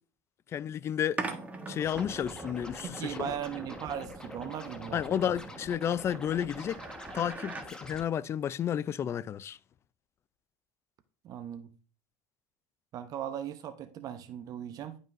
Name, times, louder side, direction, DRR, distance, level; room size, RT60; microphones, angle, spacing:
voice 1, 0.5-1.2 1.7-3.3 4.9-6.8 7.1-9.6, left 9 dB, 30° left, 0.3 m, -31 dB
sound 1, 1.2-7.7, right 3 dB, 15° right, 1.1 m, -43 dB
Scratching (performance technique), 1.8-8.0, left 1 dB, 10° left, 1.2 m, -45 dB
voice 2, 2.8-5.1 11.2-11.7 12.9-15.0, right 9 dB, 45° right, 0.7 m, -38 dB
11.0 x 5.3 x 2.5 m
supercardioid pair, 110°, 9 cm